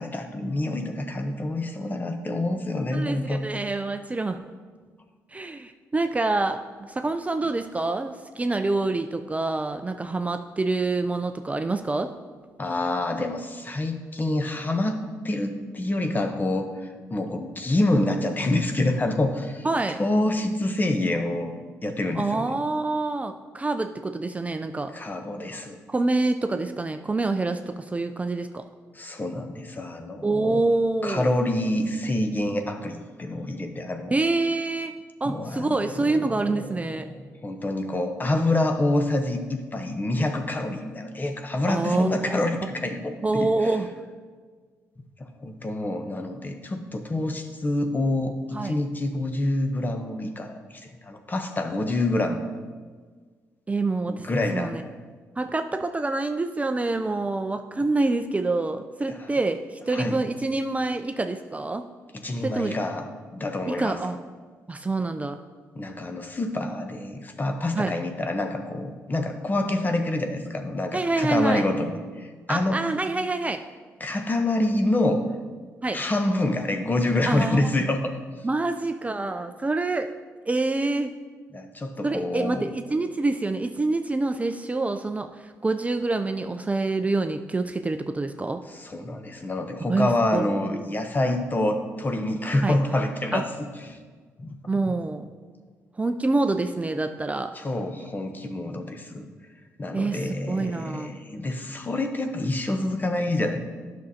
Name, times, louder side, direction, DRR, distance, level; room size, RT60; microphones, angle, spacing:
voice 1, 0.0-3.4 12.6-21.5 21.8-22.6 24.9-25.8 28.9-30.6 31.0-34.2 35.2-43.7 45.0-52.5 54.1-54.8 59.1-59.3 59.9-60.2 62.1-64.0 65.8-72.8 74.0-75.2 75.9-78.2 81.5-82.7 88.7-94.0 94.4-94.6 94.9-95.0 97.5-99.3 99.8-103.6, left 1 dB, 30° left, 5 dB, 0.9 m, -27 dB
voice 2, 2.9-4.4 5.3-12.1 19.6-20.0 22.2-24.9 25.9-28.6 30.2-31.3 34.1-34.9 35.2-37.1 41.7-42.4 43.2-43.9 48.5-48.7 53.7-54.3 54.5-54.8 55.4-61.8 62.4-62.8 63.7-64.2 64.7-65.4 67.7-67.9 70.9-71.6 72.5-73.6 75.8-76.0 77.3-77.6 78.4-80.1 80.5-81.1 82.0-88.6 89.9-90.8 92.6-92.8 93.3-93.4 94.7-95.3 96.0-97.5 99.9-101.2, right 3 dB, 20° right, 7 dB, 0.4 m, -26 dB
10.5 x 6.2 x 2.8 m, 1.5 s
supercardioid pair, 65°, 6 cm